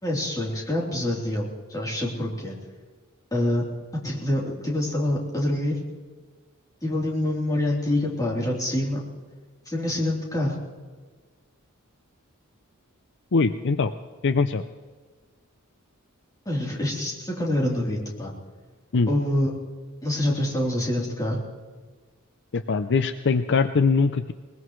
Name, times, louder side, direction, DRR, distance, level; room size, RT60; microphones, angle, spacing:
voice 1, 0.0-2.6 3.3-3.6 4.0-5.8 6.8-9.0 9.7-10.6 16.5-18.3 19.1-19.5 20.0-21.4, left 1 dB, 15° left, -4 dB, 3.5 m, -26 dB
voice 2, 13.3-13.9 14.2-14.6 18.9-19.1 22.5-24.3, left 4 dB, 55° left, 10 dB, 0.5 m, -22 dB
21.5 x 21.0 x 3.2 m, 1.4 s
head